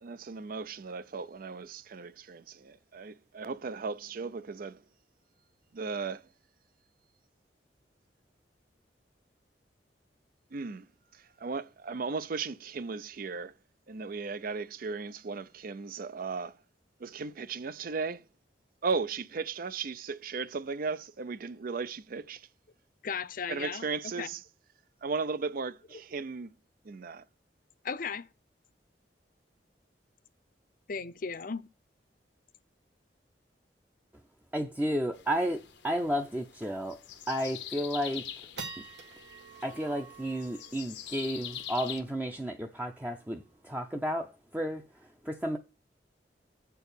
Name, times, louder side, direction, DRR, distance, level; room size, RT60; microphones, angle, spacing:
voice 1, 0.0-4.8 5.7-6.3 10.5-10.9 11.1-13.5 13.9-16.6 17.0-18.2 18.8-22.5 23.5-24.4 25.0-26.5 26.8-27.2, right 4 dB, 55° right, 0.5 m, -36 dB
voice 2, 23.0-23.9 24.2-24.3 27.8-28.3 30.9-31.7, left 5 dB, 50° left, 0.6 m, -35 dB
voice 3, 34.5-37.0 37.3-38.3 39.6-44.8 45.2-45.6, equal, 10° right, 0.6 m, -32 dB
sound 1, 35.1-42.0, left 10 dB, 85° left, 0.9 m, -45 dB
sound 2, 38.4-44.7, right 4 dB, 90° right, 2.0 m, -49 dB
7.9 x 4.6 x 6.8 m
head